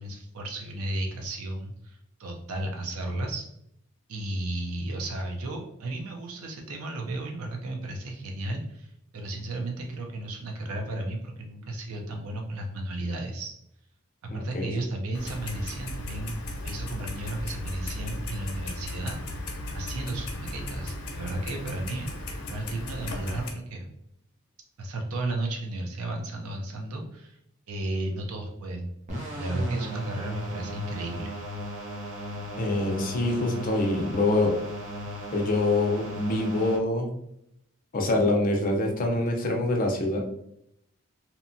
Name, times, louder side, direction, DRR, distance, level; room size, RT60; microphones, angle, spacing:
voice 1, 0.0-3.5 4.1-13.5 14.3-16.4 16.6-19.5 19.7-22.1 22.5-23.9 24.8-27.4 27.7-28.9 29.3-31.4, right 1 dB, 75° right, 2 dB, 0.5 m, -34 dB
voice 2, 14.3-14.7 32.5-34.6 35.3-37.1 37.9-40.2, left 2 dB, 40° left, 1 dB, 0.5 m, -25 dB
Clock, 15.1-23.5, left 1 dB, 85° left, 0.6 m, -36 dB
sound 1, 29.1-36.8, equal, 30° right, 0.6 m, -36 dB
2.8 x 2.2 x 2.5 m, 0.75 s
head